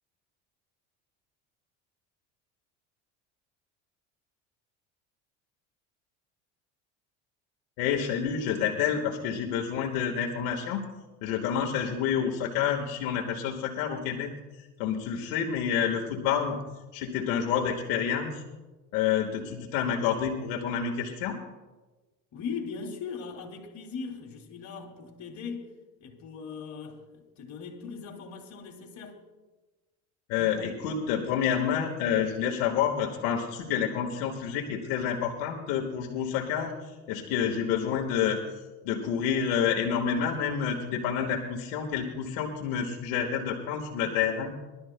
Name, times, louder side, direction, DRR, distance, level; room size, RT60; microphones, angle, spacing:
voice 1, 7.8-10.8 11.2-14.3 14.8-16.6 16.9-18.4 18.9-21.4 30.3-38.4 38.8-44.5, left 8 dB, 75° left, 1.7 m, -28 dB
voice 2, 22.3-25.7 26.0-29.2 30.3-30.5, left 5 dB, 50° left, 2.5 m, -39 dB
23.0 x 12.5 x 2.2 m
supercardioid pair, 95°, 35 cm